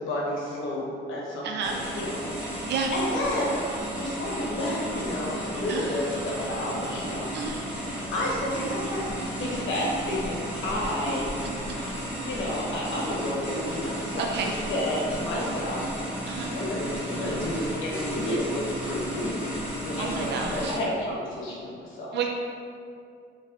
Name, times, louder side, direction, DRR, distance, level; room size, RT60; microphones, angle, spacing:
voice 1, 0.0-3.6 4.0-7.8 8.1-9.0 9.4-11.3 12.2-15.8 16.4-22.1, left 1 dB, 80° left, -4 dB, 0.9 m, -31 dB
voice 2, 1.4-1.9 2.7-2.9 5.7-6.0 7.3-7.6 14.2-14.6 16.3-16.5 20.0-20.8 22.1-22.3, right 5 dB, 60° right, 2 dB, 0.4 m, -31 dB
sound 1, 1.6-20.8, right 1 dB, 5° right, 1.4 m, -33 dB
4.0 x 2.9 x 2.8 m, 2.3 s
cardioid pair, 90°, 20 cm